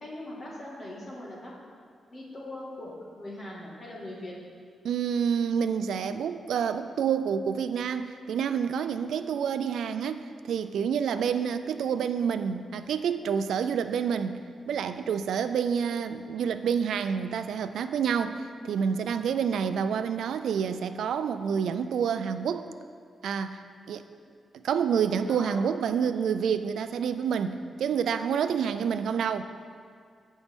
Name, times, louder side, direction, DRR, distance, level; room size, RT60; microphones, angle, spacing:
voice 1, 0.0-1.5 2.1-4.3 6.5-6.6 25.3-25.6, left 1 dB, 35° left, -5 dB, 1.9 m, -41 dB
voice 2, 4.8-14.4 14.7-22.7 23.2-23.6 23.9-24.0 24.5-29.4, right 7 dB, 85° right, 10 dB, 0.3 m, -28 dB
14.0 x 5.3 x 3.6 m, 2.2 s
wide cardioid pair, 170°, 0 cm